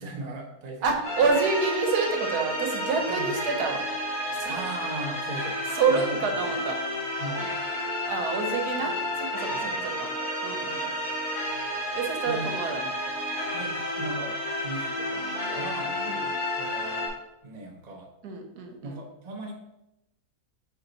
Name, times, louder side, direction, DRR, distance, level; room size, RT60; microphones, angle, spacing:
voice 1, 0.0-0.9 1.2-1.3 3.1-3.3 4.2-5.6 5.9-6.5 7.2-7.5 8.7-8.9 9.5-9.8 12.3-12.5 13.5-17.2 17.4-18.1 18.8-19.5, right 2 dB, 30° right, 1 dB, 0.9 m, -38 dB
voice 2, 0.8-3.8 4.3-4.5 5.7-6.8 8.1-10.1 10.4-10.9 11.9-12.9 16.1-16.3 18.2-19.0, right 4 dB, 80° right, 3 dB, 1.5 m, -28 dB
sound 1, 1.0-17.1, left 1 dB, 65° left, 2.9 m, -31 dB
5.7 x 4.7 x 4.0 m, 0.88 s
omnidirectional pair, 1.6 m